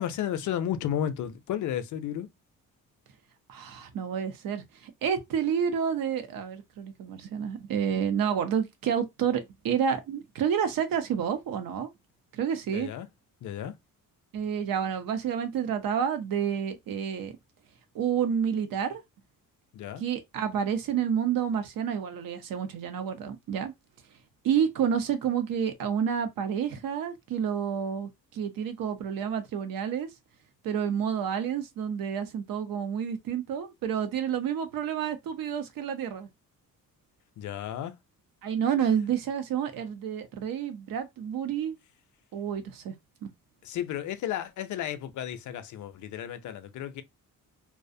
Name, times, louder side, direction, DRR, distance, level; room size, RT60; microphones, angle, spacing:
voice 1, 0.0-2.3 12.7-13.1 13.4-13.8 19.7-20.0 37.4-37.9 43.6-47.0, left 10 dB, 60° left, 0.4 m, -33 dB
voice 2, 3.5-11.9 12.3-12.9 14.3-17.3 17.9-19.0 20.0-23.7 24.4-30.1 30.6-36.3 38.4-41.8 42.3-42.9 43.2-43.3, right 8 dB, 75° right, 0.6 m, -29 dB
2.5 x 2.0 x 2.5 m
cardioid pair, 155°, 35 cm